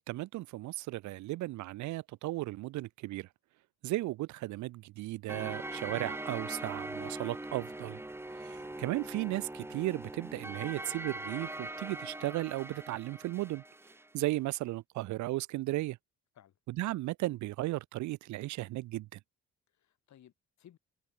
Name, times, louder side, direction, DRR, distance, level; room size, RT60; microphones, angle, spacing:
voice 1, 0.1-3.3 3.8-8.0 8.4-13.6 14.1-16.0 16.8-19.1, right 18 dB, 70° right, 0.4 m, -35 dB
sound 1, 5.3-14.1, right 1 dB, 10° right, 1.3 m, -42 dB
voice 2, 19.7-20.8, left 11 dB, 65° left, 3.3 m, -60 dB
cardioid pair, 90°, 30 cm